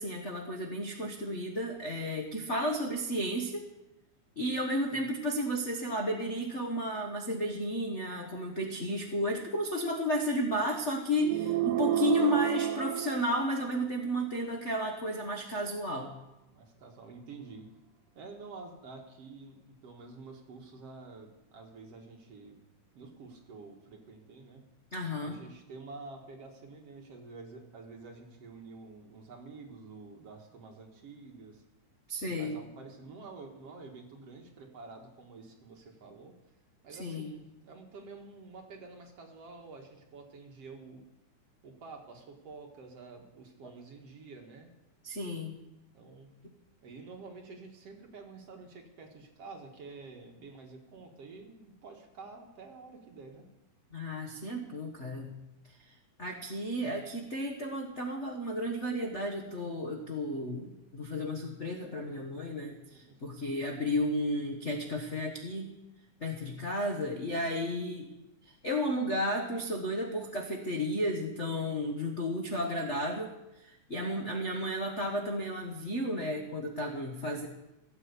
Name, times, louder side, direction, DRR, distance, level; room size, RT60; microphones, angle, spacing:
voice 1, 0.0-3.6 4.4-16.1 24.9-25.4 32.1-32.6 37.0-37.3 45.0-45.6 53.9-55.3 55.7-65.7 66.2-68.1 68.4-77.5, equal, 50° left, 2 dB, 0.8 m, -33 dB
sound 1, 11.2-13.9, right 13 dB, 80° right, 2.3 m, -30 dB
voice 2, 16.5-17.7 18.2-22.6 22.9-24.6 25.2-31.6 32.2-36.3 36.8-41.0 41.6-44.7 45.9-46.3 46.8-53.5 62.9-63.2, right 4 dB, 55° right, 2 dB, 2.6 m, -49 dB
17.5 x 8.1 x 8.2 m, 0.95 s
omnidirectional pair, 3.5 m